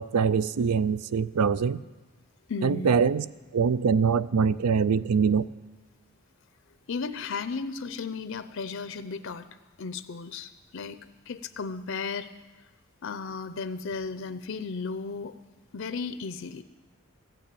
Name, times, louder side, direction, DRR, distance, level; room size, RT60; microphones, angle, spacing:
voice 1, 0.0-1.8 2.6-3.2 3.5-5.5, right 6 dB, 85° right, 17 dB, 0.4 m, -23 dB
voice 2, 2.5-3.0 6.9-9.5 9.8-11.0 11.3-12.3 13.0-15.3 15.7-16.6, left 4 dB, 60° left, 12 dB, 0.5 m, -34 dB
14.5 x 9.1 x 8.5 m, 1.2 s
head